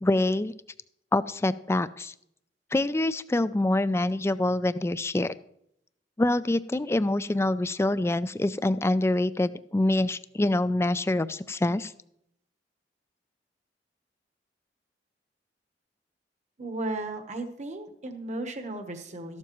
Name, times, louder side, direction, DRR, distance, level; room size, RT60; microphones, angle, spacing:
voice 1, 0.0-0.5 1.1-2.1 2.7-5.3 6.2-11.9, left 2 dB, 15° left, 15 dB, 0.3 m, -25 dB
voice 2, 16.6-19.4, right 2 dB, 40° right, 6 dB, 1.0 m, -35 dB
14.0 x 12.0 x 3.0 m, 0.74 s
head